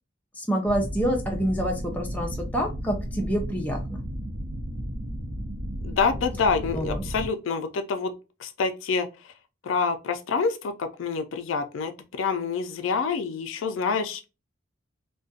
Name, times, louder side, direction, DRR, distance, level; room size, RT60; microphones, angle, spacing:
voice 1, 0.3-4.0 6.7-7.1, equal, 10° left, 0.4 m, -27 dB
sound 1, 0.6-7.3, equal, 85° right, 0.6 m, -33 dB
voice 2, 5.8-8.1 8.4-9.3 9.6-14.3, left 5 dB, 75° left, 0.4 m, -27 dB
2.4 x 2.2 x 2.5 m
head